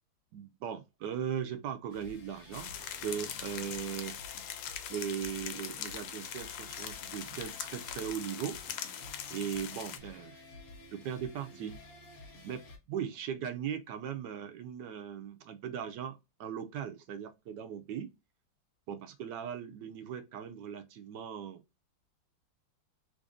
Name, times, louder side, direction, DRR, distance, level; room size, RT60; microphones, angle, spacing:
voice 1, 0.3-4.1 4.9-8.6 9.3-10.4 10.9-11.8 12.4-18.1 18.9-21.6, right 8 dB, 75° right, 1.1 m, -39 dB
sound 1, 1.9-12.8, left 2 dB, 55° left, 1.3 m, -52 dB
sound 2, 2.5-10.0, left 9 dB, 80° left, 1.3 m, -42 dB
3.3 x 2.6 x 3.6 m
omnidirectional pair, 2.1 m